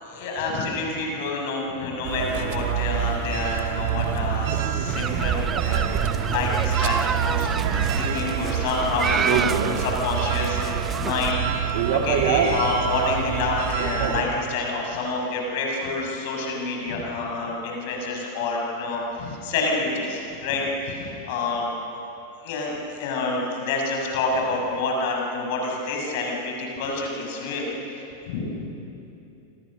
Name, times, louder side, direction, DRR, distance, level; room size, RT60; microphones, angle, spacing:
voice 1, 0.0-21.7 22.4-28.0 28.3-28.4, left 3 dB, 50° left, 0 dB, 7.1 m, -28 dB
sound 1, 2.0-14.2, right 9 dB, 50° right, 2.3 m, -26 dB
sound 2, 4.9-11.3, right 6 dB, 20° right, 0.6 m, -29 dB
29.0 x 26.5 x 6.7 m, 2.8 s
figure-of-eight pair, 90°, 0 cm